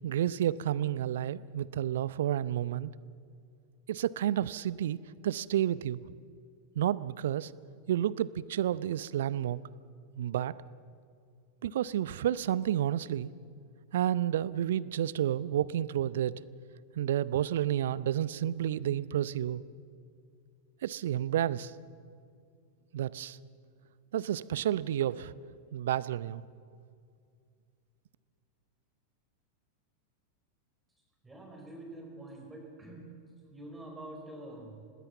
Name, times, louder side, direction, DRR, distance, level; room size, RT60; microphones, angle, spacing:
voice 1, 0.0-2.9 3.9-6.0 6.8-7.5 7.9-9.6 10.2-10.5 11.6-13.3 13.9-16.4 17.0-19.6 20.8-21.7 22.9-23.4 24.1-25.3 25.7-26.4, right 11 dB, 60° right, 20 dB, 0.6 m, -30 dB
voice 2, 31.2-34.9, right 1 dB, 10° right, 1 dB, 4.8 m, -46 dB
26.0 x 19.5 x 7.1 m, 2.3 s
figure-of-eight pair, 90°, 0 cm